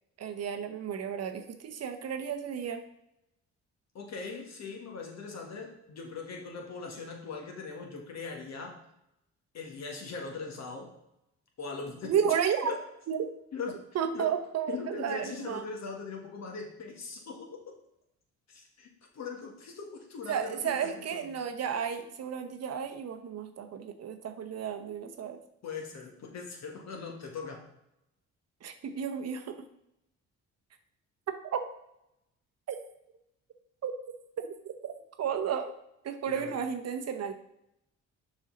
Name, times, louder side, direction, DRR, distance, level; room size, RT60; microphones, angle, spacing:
voice 1, 0.2-2.8 12.0-12.7 13.1-13.3 13.9-15.7 20.3-25.4 28.6-29.6 31.5-31.6 32.7-32.8 33.8-34.1 34.6-34.9 35.2-35.7 36.0-37.3, right 8 dB, 55° right, 8 dB, 0.8 m, -32 dB
voice 2, 4.0-8.8 9.5-10.9 11.6-12.3 12.6-12.8 13.5-13.8 14.1-14.3 14.7-17.6 18.5-18.9 19.1-21.3 25.6-27.7 36.3-36.5, left 4 dB, 60° left, 2 dB, 1.7 m, -40 dB
6.5 x 5.3 x 3.9 m, 0.82 s
cardioid pair, 90°, 30 cm